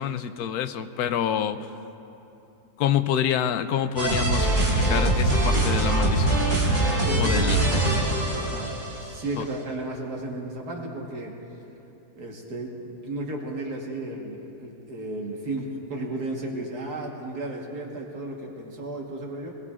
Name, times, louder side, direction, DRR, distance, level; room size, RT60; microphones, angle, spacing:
voice 1, 0.0-1.6 2.8-6.5 7.2-7.6 9.4-9.5, left 9 dB, 75° left, 10 dB, 1.1 m, -27 dB
sound 1, 4.0-9.1, right 1 dB, 45° right, 4.8 m, -23 dB
voice 2, 7.0-7.4 8.4-8.7 9.0-11.3 12.2-19.5, right 2 dB, 75° right, -1 dB, 2.0 m, -34 dB
23.0 x 20.5 x 2.5 m, 2.9 s
omnidirectional pair, 1.7 m